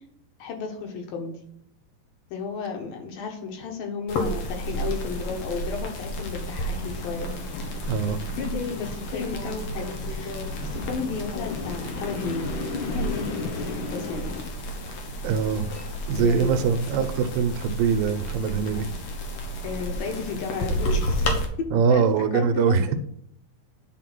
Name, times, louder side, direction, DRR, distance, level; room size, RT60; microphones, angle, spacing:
voice 1, 0.4-1.4 2.3-7.7 8.0-12.5 12.9-14.4 16.2-16.6 19.6-21.3 21.6-22.8, left 5 dB, 85° left, 3 dB, 3.4 m, -33 dB
sound 1, 4.1-21.5, equal, 55° left, 2.3 m, -32 dB
sound 2, 6.8-14.4, left 4 dB, 70° left, 1.1 m, -35 dB
voice 2, 7.9-8.2 10.6-10.7 15.2-15.7 16.1-18.9 21.7-22.9, right 6 dB, 85° right, 9 dB, 2.6 m, -23 dB
10.0 x 4.7 x 6.0 m, 0.67 s
omnidirectional pair, 4.0 m